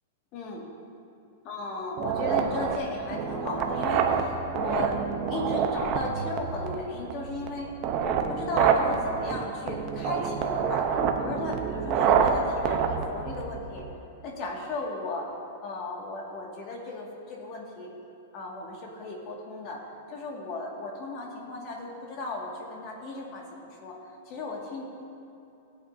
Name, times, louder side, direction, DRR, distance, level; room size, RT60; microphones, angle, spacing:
voice 1, 0.3-0.6 1.4-5.0 5.3-7.7 8.0-10.9 11.2-13.8 14.2-15.3 15.6-17.9 18.3-19.8 20.1-24.0 24.2-24.8, left 2 dB, 40° left, -1 dB, 2.0 m, -35 dB
sound 1, 2.0-14.0, right 6 dB, 35° right, 0.8 m, -27 dB
17.0 x 8.3 x 2.7 m, 2.9 s
supercardioid pair, 150°, 0 cm